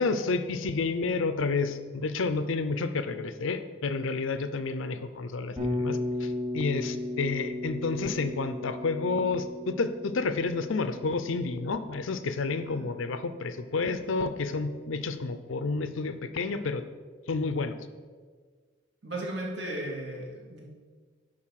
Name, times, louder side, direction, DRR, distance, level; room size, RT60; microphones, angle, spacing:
voice 1, 0.0-16.8 17.3-17.8, left 4 dB, 75° left, 11 dB, 0.5 m, -30 dB
Bass guitar, 5.6-13.6, left 2 dB, 25° right, 2.5 m, -36 dB
voice 2, 19.0-20.6, right 1 dB, 60° right, -3 dB, 2.2 m, -35 dB
9.8 x 4.0 x 5.8 m, 1.6 s
head